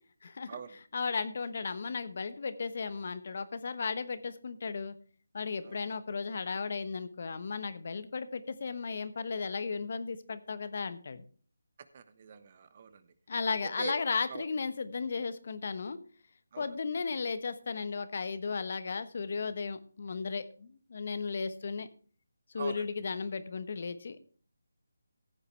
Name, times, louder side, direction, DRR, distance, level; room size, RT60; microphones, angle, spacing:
voice 1, 0.2-0.6 0.9-4.9 5.3-11.2 13.3-16.0 16.6-21.9 22.5-24.3, left 4 dB, 50° left, 12 dB, 1.1 m, -35 dB
voice 2, 11.9-13.0 13.8-14.0 14.3-14.4 16.5-16.7 22.6-22.8, right 6 dB, 35° right, 12 dB, 1.1 m, -43 dB
15.0 x 9.7 x 3.3 m, 0.41 s
figure-of-eight pair, 160°, 0 cm